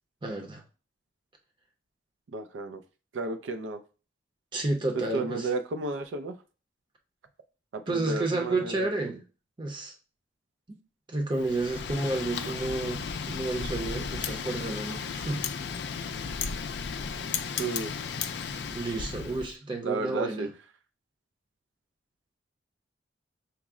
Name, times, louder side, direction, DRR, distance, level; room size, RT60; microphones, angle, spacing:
voice 1, 0.2-0.6 4.5-5.5 7.9-9.2 9.6-9.9 11.1-15.4 18.7-20.5, right 2 dB, 25° right, 0.6 m, -31 dB
voice 2, 2.3-2.8 3.1-3.8 5.1-6.4 7.7-8.9 17.6-17.9 19.8-20.5, right 3 dB, 80° right, 0.4 m, -32 dB
Wind, 11.4-19.5, left 6 dB, 65° left, 0.4 m, -34 dB
5.8 x 2.0 x 3.6 m
head